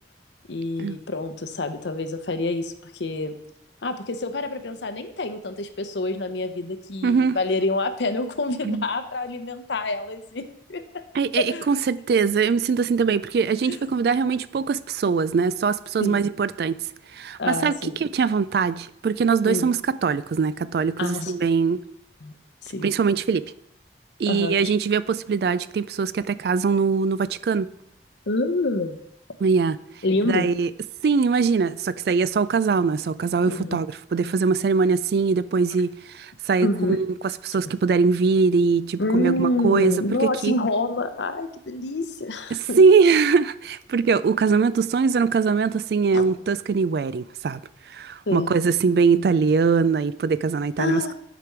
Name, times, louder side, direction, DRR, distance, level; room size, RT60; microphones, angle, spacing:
voice 1, 0.5-3.3 3.8-11.0 11.4-11.7 13.6-13.8 16.0-16.3 17.4-18.0 19.4-19.7 21.0-21.3 22.2-22.3 22.6-22.9 24.3-24.7 28.3-29.0 30.0-30.5 33.5-33.8 36.6-37.0 37.6-37.7 39.0-42.8 46.1-46.2 48.3-48.5 50.8-51.1, left 2 dB, 75° left, 0.7 m, -27 dB
voice 2, 7.0-7.4 8.6-8.8 11.1-16.8 17.1-17.7 18.0-21.8 22.8-23.4 24.2-27.7 29.4-29.8 30.2-30.7 31.0-37.1 37.4-39.9 40.2-40.5 42.5-47.6 47.9-51.1, right 5 dB, 60° right, 0.3 m, -22 dB
10.0 x 5.1 x 4.6 m
head